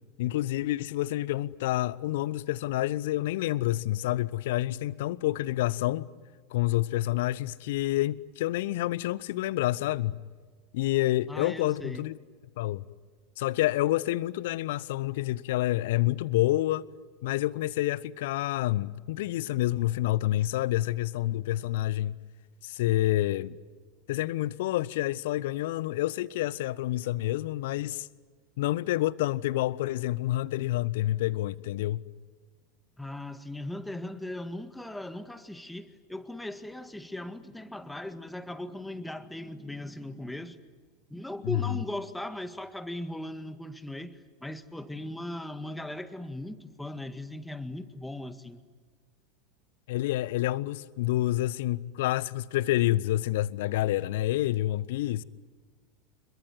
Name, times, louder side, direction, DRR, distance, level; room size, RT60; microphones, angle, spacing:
voice 1, 0.2-6.1 6.5-10.2 10.7-12.1 12.6-12.8 13.4-16.8 17.2-22.1 22.6-23.6 24.1-28.1 28.6-32.0 41.4-41.8 49.9-55.2, left 15 dB, 60° left, 0.8 m, -28 dB
voice 2, 11.3-12.1 33.0-40.6 41.1-48.6, left 1 dB, 5° left, 1.9 m, -38 dB
27.0 x 22.5 x 9.6 m
figure-of-eight pair, 80°, 0 cm